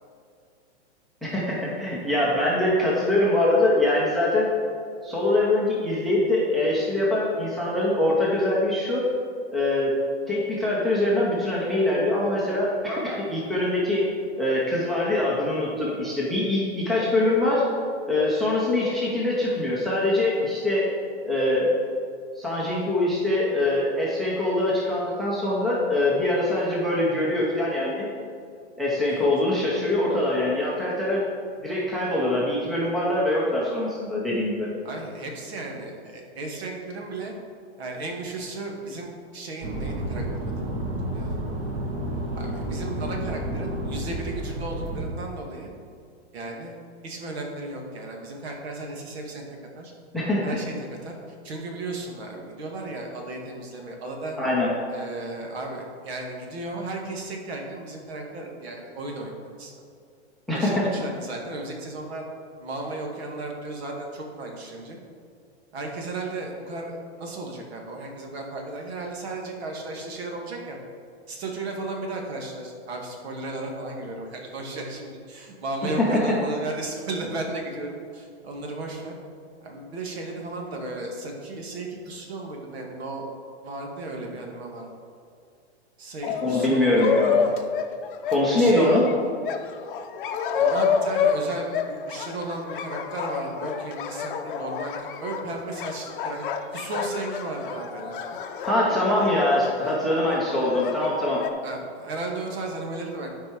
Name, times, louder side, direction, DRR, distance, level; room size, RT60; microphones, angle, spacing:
voice 1, 1.2-4.5 5.0-9.1 9.5-9.9 10.3-14.1 14.4-17.7 18.1-20.9 21.2-21.7 22.4-28.1 28.8-31.2 31.6-34.7 50.1-50.6 54.4-54.7 60.5-60.9 76.0-76.4 86.4-87.4 88.3-89.0 98.6-101.4, left 1 dB, ahead, -6 dB, 0.6 m, -23 dB
voice 2, 34.8-37.3 37.8-40.8 41.1-41.3 42.4-45.7 46.3-46.8 47.0-49.4 49.8-49.9 50.4-54.4 54.9-59.7 60.5-62.2 62.6-65.0 65.7-70.8 71.3-79.1 79.6-83.3 83.6-84.9 86.0-87.1 88.5-88.9 90.5-98.4 101.6-103.3, right 2 dB, 65° right, 1 dB, 1.9 m, -35 dB
sound 1, 39.6-45.0, right 1 dB, 25° right, 1.0 m, -30 dB
sound 2, 86.2-101.5, left 6 dB, 50° left, 0.7 m, -29 dB
11.5 x 4.7 x 4.5 m, 2.3 s
hypercardioid pair, 160°, 34 cm